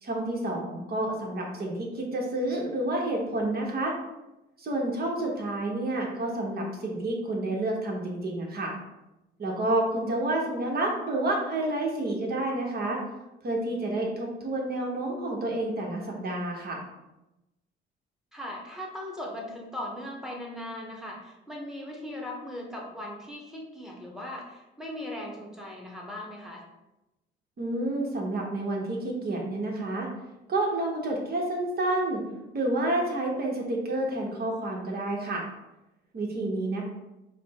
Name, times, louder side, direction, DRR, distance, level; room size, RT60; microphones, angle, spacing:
voice 1, 0.0-3.9 4.6-8.7 9.4-13.0 13.4-16.8 27.6-30.1 30.5-32.2 32.5-35.4 36.1-36.8, right 1 dB, 50° right, -1 dB, 1.1 m, -29 dB
voice 2, 18.3-26.6, left 1 dB, ahead, -2 dB, 1.1 m, -39 dB
4.9 x 2.1 x 3.6 m, 0.96 s
cardioid pair, 90°, 20 cm